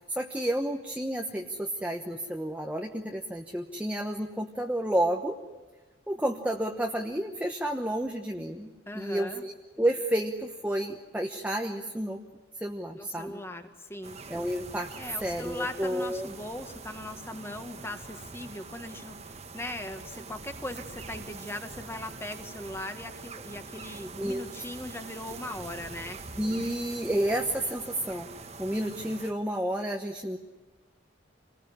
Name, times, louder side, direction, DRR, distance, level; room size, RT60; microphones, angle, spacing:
voice 1, 0.1-5.4 6.1-12.2 12.6-13.4 14.3-14.9 15.2-16.3 24.2-24.4 26.4-28.3 28.6-30.4, right 1 dB, 5° right, 3 dB, 1.1 m, -31 dB
voice 2, 8.9-9.4 12.9-14.2 15.0-26.2, left 1 dB, 15° left, 6 dB, 1.8 m, -39 dB
sound 1, 14.0-29.3, right 4 dB, 35° right, 1.4 m, -44 dB
27.5 x 20.0 x 9.9 m, 1.3 s
head